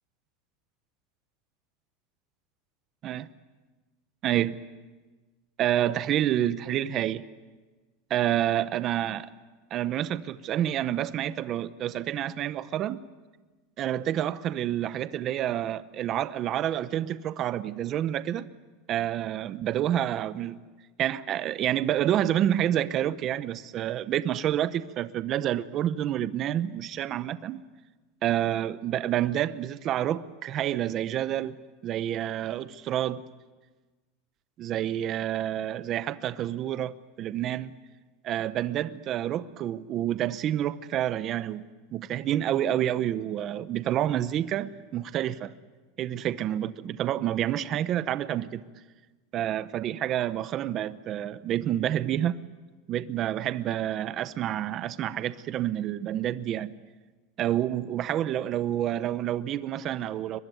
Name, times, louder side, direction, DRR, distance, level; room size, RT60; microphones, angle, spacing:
voice 1, 4.2-4.6 5.6-7.2 8.1-9.3 9.7-13.0 13.8-18.5 18.9-20.6 21.0-27.6 28.2-31.6 31.8-33.2 34.6-37.7 38.2-45.5 46.0-48.6 49.3-52.4 52.9-56.8 57.4-60.4, right 11 dB, 30° right, 0.7 m, -28 dB
23.0 x 21.5 x 9.2 m
supercardioid pair, 170°, 0 cm